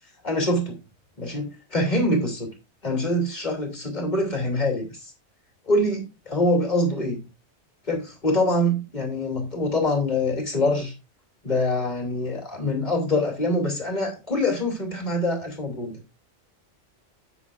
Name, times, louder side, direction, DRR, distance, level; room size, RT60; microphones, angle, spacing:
voice 1, 0.2-0.8 1.2-2.5 2.8-5.1 5.7-7.2 7.9-10.9 11.4-16.0, left 1 dB, 35° left, 2 dB, 2.9 m, -24 dB
10.5 x 8.5 x 2.5 m, 0.27 s
omnidirectional pair, 1.3 m